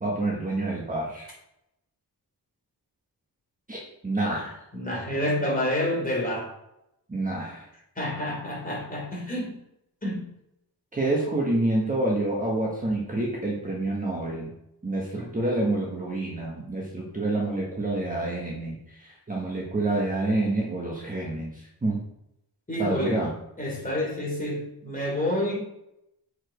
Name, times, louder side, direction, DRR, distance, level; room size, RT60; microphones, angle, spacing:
voice 1, 0.0-1.3 3.7-4.5 7.1-7.6 10.9-14.5 14.8-22.0 22.8-23.3, right 2 dB, 20° right, -3 dB, 1.4 m, -28 dB
voice 2, 4.7-6.5 8.0-9.6 10.0-10.2 15.1-15.4 22.7-23.2 23.6-25.6, left 1 dB, 20° left, -3 dB, 3.2 m, -28 dB
7.3 x 4.9 x 5.0 m, 0.83 s
wide cardioid pair, 155°, 39 cm